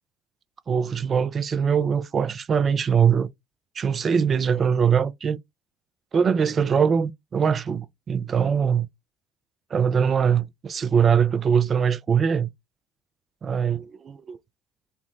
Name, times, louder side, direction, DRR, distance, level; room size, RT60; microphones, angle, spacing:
voice 1, 0.7-3.3 3.8-5.4 6.1-8.9 9.7-12.5 13.4-14.4, right 7 dB, 45° right, 0.4 m, -22 dB
3.2 x 2.1 x 2.6 m
hypercardioid pair, 60°, 0 cm